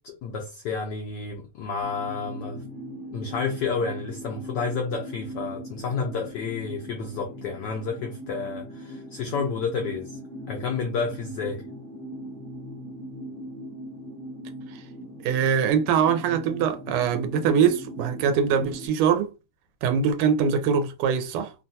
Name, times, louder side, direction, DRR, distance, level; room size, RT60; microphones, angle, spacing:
voice 1, 0.0-2.6 3.1-10.2 10.5-11.6, left 5 dB, 80° left, 0.9 m, -30 dB
sound 1, 1.8-18.9, equal, ahead, 0.5 m, -40 dB
voice 2, 15.2-19.3 19.8-21.5, right 7 dB, 85° right, 1.5 m, -23 dB
3.5 x 2.2 x 2.6 m
omnidirectional pair, 2.4 m